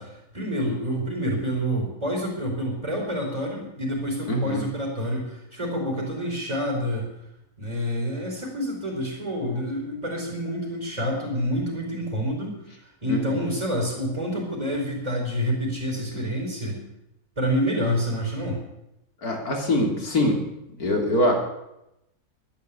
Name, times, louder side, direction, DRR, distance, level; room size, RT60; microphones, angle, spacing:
voice 1, 0.0-7.1 7.6-16.8 17.4-18.6, equal, 20° right, -2 dB, 3.8 m, -28 dB
voice 2, 4.3-4.6 13.1-13.2 16.1-16.2 19.2-20.4 20.8-21.3, left 1 dB, 75° left, 1 dB, 3.3 m, -23 dB
12.0 x 11.0 x 8.1 m, 0.85 s
omnidirectional pair, 1.6 m